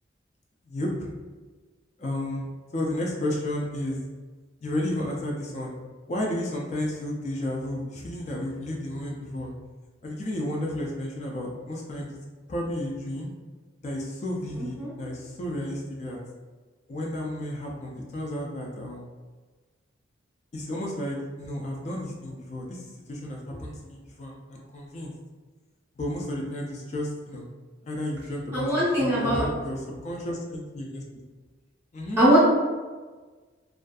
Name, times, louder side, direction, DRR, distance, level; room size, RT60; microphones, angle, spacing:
voice 1, 0.7-1.1 2.0-4.0 4.6-5.7 6.1-9.5 10.0-12.2 12.5-13.3 13.8-16.2 16.9-19.1 20.5-25.1 26.0-27.4 27.8-28.7 29.0-31.0 31.9-32.2, left 1 dB, 35° left, -1 dB, 0.3 m, -32 dB
voice 2, 14.6-14.9 28.5-29.4 32.2-32.4, right 1 dB, 15° right, -11 dB, 0.7 m, -21 dB
2.5 x 2.3 x 2.3 m, 1.3 s
head